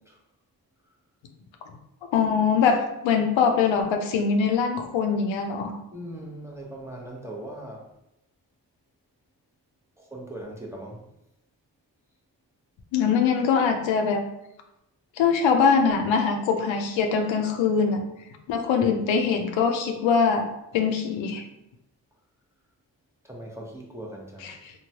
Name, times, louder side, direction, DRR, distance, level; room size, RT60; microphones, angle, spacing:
voice 1, 2.1-5.8 12.9-14.2 15.2-18.0 18.5-20.5 20.7-21.4 24.4-24.7, left 6 dB, 90° left, 4 dB, 0.5 m, -23 dB
voice 2, 5.9-7.9 10.0-11.0 23.2-24.5, right 1 dB, 5° right, -2 dB, 0.7 m, -39 dB
2.9 x 2.2 x 2.7 m, 0.84 s
cardioid pair, 50°, 44 cm